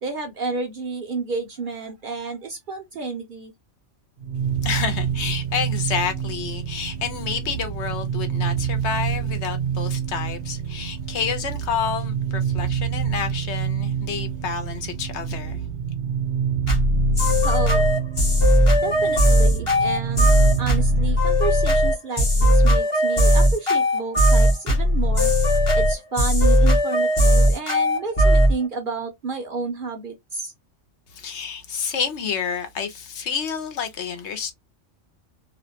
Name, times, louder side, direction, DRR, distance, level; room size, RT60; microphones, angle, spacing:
voice 1, 0.0-3.5 17.4-17.9 18.8-25.3 25.8-30.5, right 4 dB, 55° right, 0.6 m, -31 dB
sound 1, 4.2-21.2, right 8 dB, 75° right, 0.9 m, -27 dB
voice 2, 4.6-15.6 31.1-34.5, left 6 dB, 70° left, 0.9 m, -29 dB
sound 2, 16.7-28.5, equal, 30° left, 0.8 m, -17 dB
2.5 x 2.0 x 2.7 m
omnidirectional pair, 1.3 m